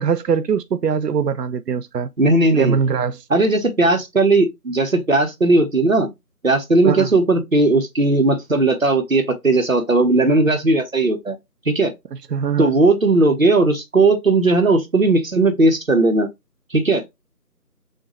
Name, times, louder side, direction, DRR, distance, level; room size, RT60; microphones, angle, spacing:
voice 1, 0.0-2.1 2.5-3.2 6.8-7.1 12.3-12.7, right 6 dB, 85° right, 0.6 m, -21 dB
voice 2, 2.2-2.8 3.3-6.1 6.4-11.4 11.6-11.9 12.6-16.3 16.7-17.0, right 2 dB, 55° right, 1.1 m, -17 dB
6.6 x 2.6 x 3.1 m
figure-of-eight pair, 180°, 48 cm